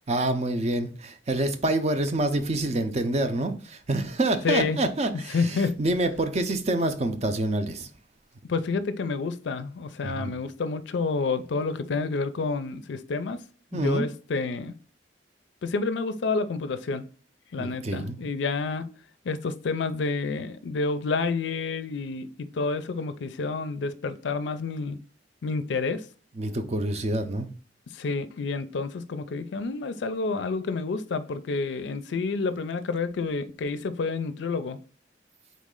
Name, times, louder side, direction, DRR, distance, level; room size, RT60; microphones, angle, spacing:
voice 1, 0.1-7.9 10.0-10.3 13.7-14.1 17.6-18.2 26.4-27.5, right 2 dB, 35° right, 0.5 m, -27 dB
voice 2, 4.4-4.8 5.3-5.7 8.5-13.4 13.7-14.7 15.6-17.1 17.5-18.9 19.2-25.0 25.4-26.0 27.9-34.8, left 4 dB, 75° left, 0.4 m, -29 dB
4.1 x 3.1 x 3.7 m
head